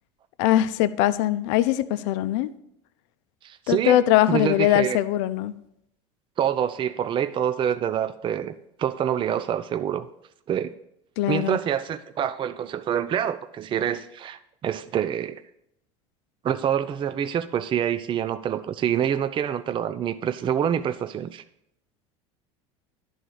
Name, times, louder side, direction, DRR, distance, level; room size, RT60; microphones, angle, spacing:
voice 1, 0.4-2.5 3.7-5.5 11.2-11.6, left 13 dB, 70° left, 0.5 m, -21 dB
voice 2, 3.4-4.0 4.3-5.0 6.4-8.5 8.8-10.1 10.5-10.7 11.3-15.4 16.4-21.4, right 9 dB, 35° right, 0.5 m, -26 dB
11.0 x 3.9 x 6.3 m
hypercardioid pair, 85°, 15 cm